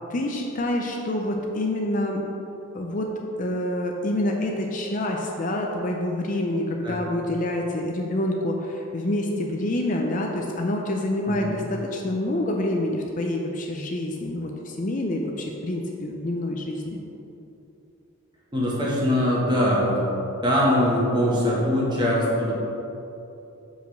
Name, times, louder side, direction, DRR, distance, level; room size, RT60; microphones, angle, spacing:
voice 1, 0.1-2.2 2.7-3.1 3.4-17.0, left 1 dB, 35° left, 1 dB, 0.5 m, -27 dB
voice 2, 18.5-20.0 20.4-22.5, equal, 20° right, -5 dB, 1.4 m, -22 dB
5.2 x 4.9 x 6.4 m, 2.9 s
head